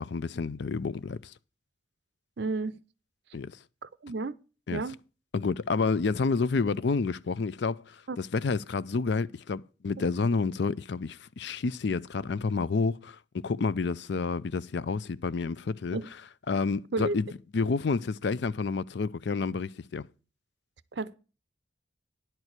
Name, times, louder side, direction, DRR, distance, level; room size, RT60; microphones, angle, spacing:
voice 1, 0.0-1.3 3.3-3.6 4.7-4.8 5.3-16.0 16.5-17.3 17.5-20.1, left 4 dB, 55° left, 0.4 m, -29 dB
voice 2, 2.4-2.8 3.8-4.3 4.7-5.0 8.1-8.2 15.9-16.1 16.9-17.2 20.9-21.1, right 3 dB, 55° right, 0.5 m, -32 dB
10.5 x 4.6 x 8.0 m
head